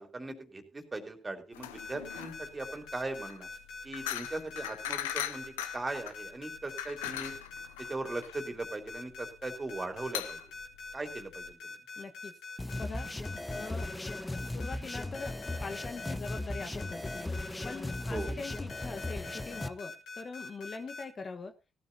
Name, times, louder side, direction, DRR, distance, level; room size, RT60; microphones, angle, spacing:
voice 1, 0.0-3.5 3.8-7.4 7.8-10.4 10.9-11.8 18.1-18.3, right 2 dB, 25° right, 6 dB, 3.3 m, -39 dB
sound 1, 1.5-11.5, left 13 dB, 85° left, 0.6 m, -40 dB
sound 2, 1.8-21.0, left 4 dB, 70° left, 4.1 m, -44 dB
voice 2, 12.0-12.4 12.7-13.1 13.5-13.9 14.4-15.3 15.6-17.3 17.6-21.5, left 4 dB, 40° left, 7 dB, 1.4 m, -42 dB
sound 3, 12.6-19.7, left 2 dB, 15° left, 0.9 m, -37 dB
17.5 x 13.0 x 2.8 m, 0.29 s
hypercardioid pair, 45°, 0 cm